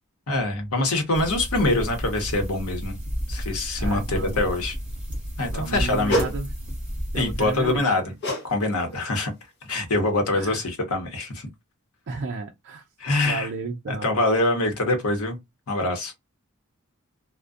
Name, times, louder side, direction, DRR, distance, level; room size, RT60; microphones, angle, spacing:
voice 1, 0.3-3.0 3.3-4.7 5.4-6.2 7.1-8.1 8.4-9.3 9.7-11.5 13.0-13.5 13.9-15.4 15.7-16.1, left 2 dB, 85° left, 0.9 m, -24 dB
sound 1, 1.1-7.8, equal, 5° right, 1.1 m, -32 dB
voice 2, 3.8-4.5 5.5-6.5 7.1-7.8 10.3-10.6 12.1-12.8 13.2-14.1, right 4 dB, 55° right, 0.4 m, -33 dB
sound 2, 6.1-6.4 8.2-8.5 8.8-9.1 9.6-9.7, right 1 dB, 55° left, 0.9 m, -26 dB
2.4 x 2.1 x 2.4 m
head